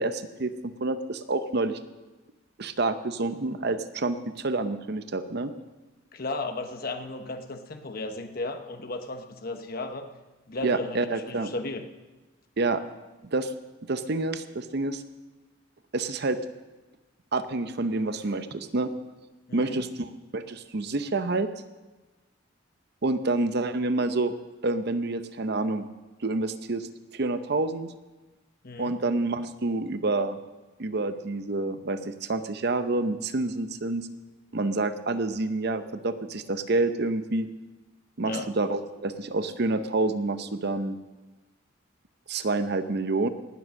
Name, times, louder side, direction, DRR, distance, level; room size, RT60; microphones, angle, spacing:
voice 1, 0.0-1.8 2.6-5.5 10.6-11.5 12.6-12.8 13.2-13.5 13.8-15.0 15.9-16.4 17.3-18.9 19.5-21.5 23.0-24.3 24.6-25.9 26.2-27.9 28.8-30.4 30.8-34.1 34.5-37.5 38.2-41.0 42.3-43.3, right 2 dB, 55° right, 10 dB, 0.7 m, -28 dB
voice 2, 6.1-10.1 10.5-11.8 19.5-19.8 28.6-28.9 38.2-38.5, left 2 dB, 50° left, 6 dB, 1.0 m, -35 dB
19.0 x 7.8 x 6.4 m, 1.2 s
head